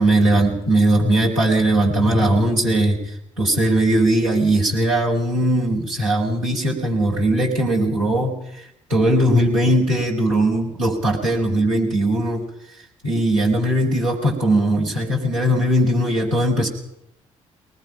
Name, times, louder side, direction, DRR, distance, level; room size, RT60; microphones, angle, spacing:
voice 1, 0.0-3.0 3.4-8.4 8.9-12.5 13.0-16.7, right 1 dB, 90° right, -5 dB, 4.8 m, -19 dB
23.5 x 20.0 x 5.8 m, 0.76 s
figure-of-eight pair, 40°, 17 cm